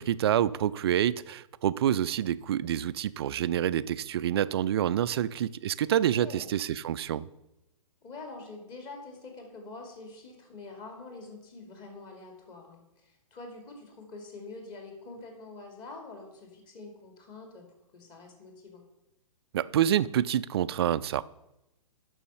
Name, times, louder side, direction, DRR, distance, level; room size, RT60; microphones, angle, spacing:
voice 1, 0.0-7.3 19.5-21.2, right 10 dB, 45° right, 0.4 m, -27 dB
voice 2, 8.0-17.7 17.9-18.8, left 3 dB, 25° left, 2.4 m, -45 dB
9.0 x 6.2 x 6.8 m
figure-of-eight pair, 115°, 18 cm